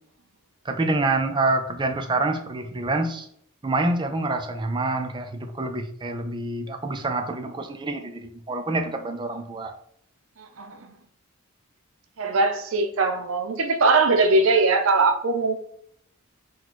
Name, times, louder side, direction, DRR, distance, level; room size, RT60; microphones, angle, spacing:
voice 1, 0.6-3.3 3.6-9.7, right 2 dB, 20° right, 0.4 m, -27 dB
voice 2, 12.2-15.6, right 3 dB, 65° right, 0.6 m, -21 dB
4.1 x 2.2 x 4.6 m
head